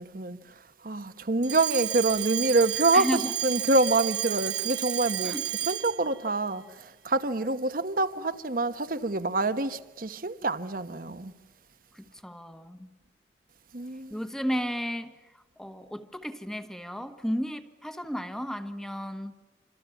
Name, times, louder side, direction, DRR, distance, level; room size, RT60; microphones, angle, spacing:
voice 1, 0.0-5.3 5.6-11.3 13.7-14.2, right 2 dB, 50° right, 1.1 m, -27 dB
Alarm, 1.4-6.1, right 13 dB, 75° right, 0.8 m, -31 dB
voice 2, 2.9-3.3 5.2-5.4 11.9-12.9 14.1-19.3, equal, 5° left, 1.3 m, -33 dB
28.0 x 26.5 x 7.1 m
head